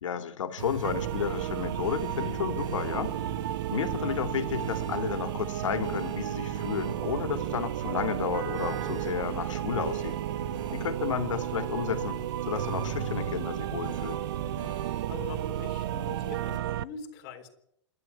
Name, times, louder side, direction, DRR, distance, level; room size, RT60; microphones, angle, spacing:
voice 1, 0.0-3.2 3.7-10.2 10.7-12.2 12.5-14.3, left 8 dB, 90° left, 8 dB, 2.8 m, -32 dB
sound 1, 0.6-16.6, right 3 dB, 85° right, 5.5 m, -41 dB
sound 2, 0.8-16.8, right 12 dB, 50° right, 0.8 m, -33 dB
voice 2, 15.1-17.5, left 6 dB, 35° left, 4 dB, 3.8 m, -43 dB
27.5 x 12.0 x 9.6 m, 0.76 s
hypercardioid pair, 160°, 16 cm